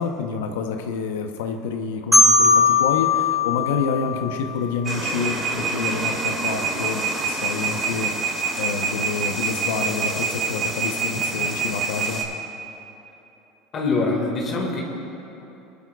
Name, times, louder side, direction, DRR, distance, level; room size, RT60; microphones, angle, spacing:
voice 1, 0.0-12.2, left 5 dB, 85° left, 5 dB, 0.9 m, -28 dB
Marimba xylophone, 2.1-5.0, left 3 dB, ahead, 2.4 m, -19 dB
sound 1, 4.8-12.2, right 4 dB, 35° right, 2.0 m, -26 dB
voice 2, 13.7-14.8, left 3 dB, 40° left, -1 dB, 2.0 m, -23 dB
23.0 x 12.0 x 2.4 m, 3.0 s
supercardioid pair, 110°, 0 cm